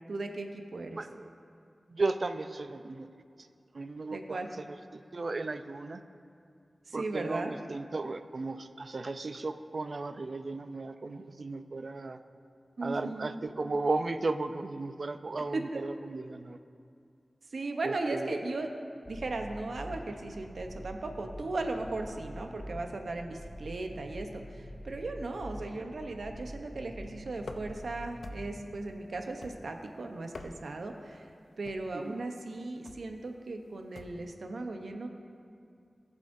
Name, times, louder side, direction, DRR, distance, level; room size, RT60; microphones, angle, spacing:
voice 1, 0.1-1.0 4.1-4.5 6.9-7.5 12.8-13.4 15.5-15.9 17.5-18.7 19.1-31.3 31.6-35.1, right 2 dB, 80° right, 4 dB, 0.8 m, -37 dB
voice 2, 1.0-1.3 1.9-3.1 3.7-4.4 4.9-6.0 6.9-12.2 12.8-16.6 17.8-18.3 31.9-32.2, right 3 dB, 60° right, 10 dB, 0.4 m, -35 dB
sound 1, 19.0-28.7, equal, 10° left, 1.8 m, -45 dB
sound 2, 27.4-27.9 28.2-28.7 29.4-29.9 30.2-30.9 31.6-32.0 32.9-33.1 34.0-34.3, left 3 dB, 75° left, 0.6 m, -47 dB
19.0 x 7.2 x 2.6 m, 2.4 s
wide cardioid pair, 90°, 0 cm